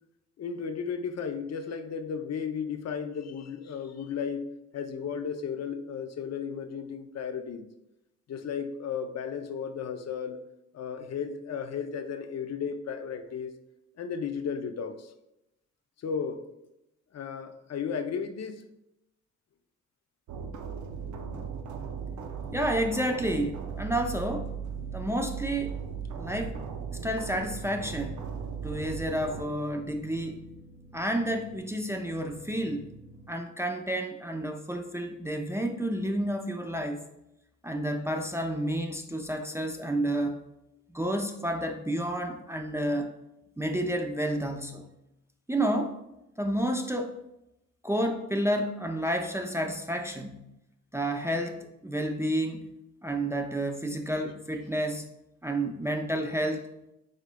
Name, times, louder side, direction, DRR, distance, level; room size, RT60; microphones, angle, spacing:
voice 1, 0.4-7.7 8.3-10.4 10.7-13.5 14.0-15.1 16.0-16.4 17.1-18.6, left 6 dB, 60° left, 8 dB, 0.5 m, -34 dB
sound 1, 20.3-29.4, right 7 dB, 70° right, 0.5 m, -37 dB
sound 2, 20.7-33.3, right 2 dB, 35° right, 0.9 m, -49 dB
voice 2, 22.5-24.5 24.9-25.8 26.2-26.6 27.0-28.3 28.6-30.6 30.9-32.9 33.3-37.0 37.6-40.4 40.9-43.1 43.6-44.9 45.5-46.0 46.4-47.2 47.8-50.5 50.9-52.7 53.0-55.0 55.4-56.7, right 1 dB, 10° right, 3 dB, 0.5 m, -30 dB
5.0 x 3.5 x 2.2 m, 0.87 s
supercardioid pair, 50°, 30 cm